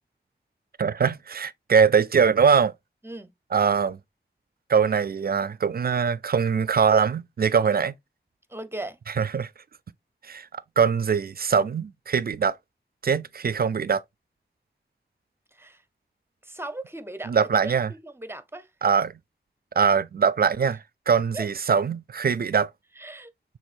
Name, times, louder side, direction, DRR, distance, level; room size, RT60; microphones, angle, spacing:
voice 1, 0.8-2.7 3.5-4.0 4.7-7.9 9.2-9.5 10.2-12.6 13.0-14.0 17.3-17.9 18.8-19.1 19.8-22.7, right 6 dB, 55° right, 0.4 m, -22 dB
voice 2, 8.5-9.0 15.5-15.8 16.4-18.7 21.3-21.5 23.0-23.3, right 2 dB, 10° right, 0.6 m, -37 dB
6.3 x 3.3 x 2.5 m
wide cardioid pair, 60°, 19 cm